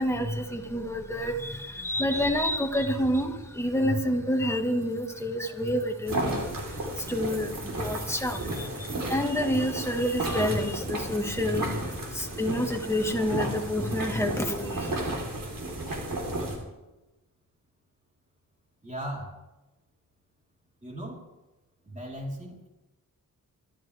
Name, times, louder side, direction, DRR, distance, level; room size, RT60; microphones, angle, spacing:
voice 1, 0.0-15.0, equal, 10° left, 2 dB, 1.7 m, -28 dB
sound 1, 4.7-5.2 5.6-12.3, right 3 dB, 35° right, 1.9 m, -49 dB
sound 2, 6.1-16.6, right 1 dB, 75° right, 4.0 m, -33 dB
voice 2, 18.8-19.3 20.8-21.2 21.8-22.7, equal, 20° right, -2 dB, 4.1 m, -37 dB
24.5 x 13.0 x 3.5 m, 1.0 s
wide cardioid pair, 120°, 34 cm